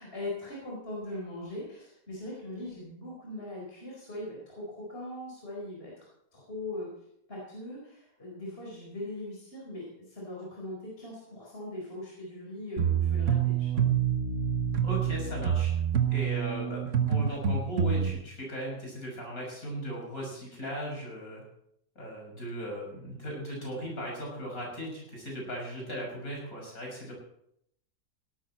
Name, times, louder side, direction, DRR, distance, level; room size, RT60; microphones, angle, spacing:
voice 1, 0.0-6.1 6.3-6.9 7.3-13.9, left 1 dB, 35° left, -4 dB, 4.9 m, -40 dB
sound 1, 12.8-18.1, right 8 dB, 55° right, 1.4 m, -27 dB
voice 2, 14.8-15.7 16.1-16.8 17.1-21.4 21.9-27.1, equal, 60° left, -2 dB, 6.7 m, -37 dB
17.5 x 13.0 x 4.3 m, 0.74 s
omnidirectional pair, 1.7 m